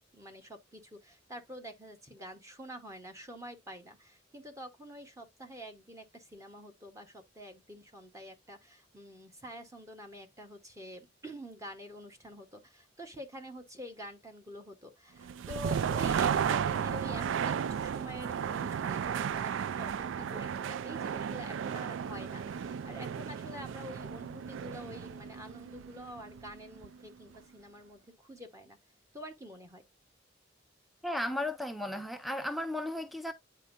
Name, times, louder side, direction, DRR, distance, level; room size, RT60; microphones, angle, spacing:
voice 1, 0.0-28.8 29.1-29.8, equal, 15° right, 1.1 m, -47 dB
sound 1, 15.2-27.1, right 7 dB, 75° right, 0.3 m, -34 dB
voice 2, 31.0-33.3, left 1 dB, ahead, 0.4 m, -35 dB
9.8 x 4.4 x 2.5 m
head